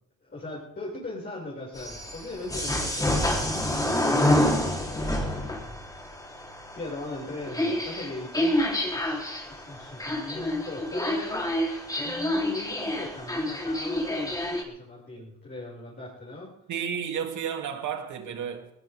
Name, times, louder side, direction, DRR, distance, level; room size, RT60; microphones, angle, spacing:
voice 1, 0.2-4.0 4.7-5.7 6.7-8.6 8.9-9.2 9.5-11.5 11.9-16.5, left 2 dB, 35° left, -6 dB, 6.7 m, -39 dB
sound 1, 1.8-14.6, left 1 dB, 10° left, 4.1 m, -28 dB
voice 2, 16.7-18.7, right 7 dB, 75° right, 3 dB, 3.3 m, -32 dB
20.5 x 18.5 x 3.8 m, 0.79 s
cardioid pair, 90°, 30 cm